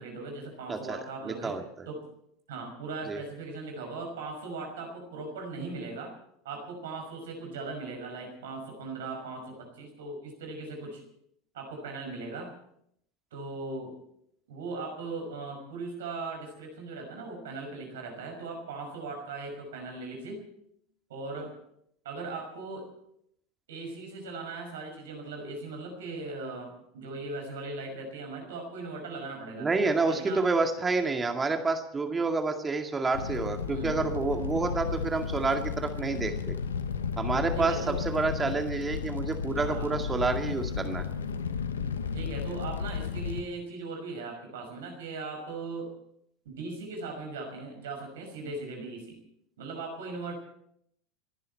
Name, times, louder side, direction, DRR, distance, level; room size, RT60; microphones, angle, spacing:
voice 1, 0.0-1.5 1.9-2.0 2.5-6.1 6.4-11.0 11.5-12.5 13.3-13.9 14.5-20.5 21.1-21.5 22.0-22.8 23.7-29.7 30.0-30.4 33.7-33.9 37.5-38.0 39.5-40.0 42.1-45.9 46.4-49.2 49.6-50.3, right 3 dB, 70° right, 3 dB, 5.8 m, -39 dB
voice 2, 0.7-1.6 3.1-3.2 29.6-36.5 37.2-41.1, right 3 dB, 20° right, 5 dB, 2.1 m, -29 dB
Fire, 33.1-43.4, left 6 dB, 80° left, 1.0 m, -33 dB
30.0 x 11.0 x 4.4 m, 0.72 s
hypercardioid pair, 80°, 0 cm